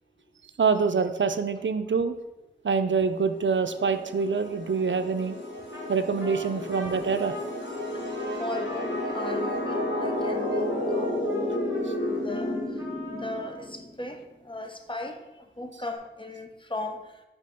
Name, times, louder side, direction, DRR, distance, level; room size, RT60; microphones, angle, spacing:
voice 1, 0.6-2.2 2.6-5.4 5.9-7.4, right 5 dB, 75° right, 9 dB, 0.5 m, -25 dB
sound 1, 3.3-13.9, left 1 dB, 70° left, 1.5 m, -31 dB
Trumpet, 5.7-5.9 6.2-13.6, equal, 15° right, 2.4 m, -44 dB
voice 2, 7.9-11.5 12.1-12.8 13.1-17.1, left 2 dB, 25° left, 5 dB, 0.8 m, -38 dB
5.4 x 4.6 x 5.2 m, 1.0 s
wide cardioid pair, 40°, 20 cm